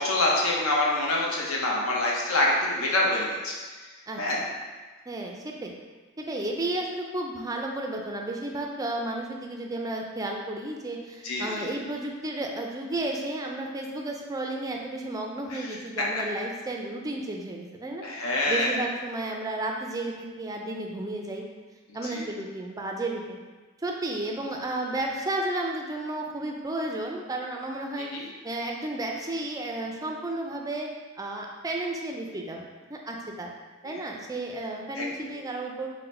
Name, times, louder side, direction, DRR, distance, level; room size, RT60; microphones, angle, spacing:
voice 1, 0.0-3.5 4.2-4.4 11.2-11.7 15.5-15.6 16.0-16.1 18.0-18.7 22.0-22.2 28.0-28.2 33.8-34.0 35.0-35.1, left 2 dB, 70° left, -3 dB, 0.8 m, -26 dB
voice 2, 5.1-5.7 6.2-21.4 21.9-23.4 23.8-30.9 31.2-33.5 33.8-35.9, right 2 dB, 15° right, 0 dB, 0.4 m, -33 dB
3.8 x 2.1 x 4.2 m, 1.3 s
head